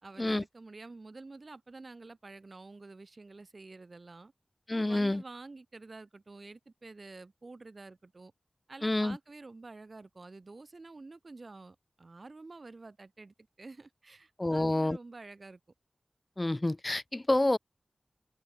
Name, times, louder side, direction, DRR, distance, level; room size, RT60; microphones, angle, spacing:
voice 1, 0.0-4.3 4.7-8.3 8.7-15.6, right 3 dB, 55° right, 3.5 m, -49 dB
voice 2, 4.7-5.2 8.8-9.2 14.4-15.0 16.4-17.6, left 1 dB, 30° left, 0.8 m, -28 dB
wide cardioid pair, 55°, 0 cm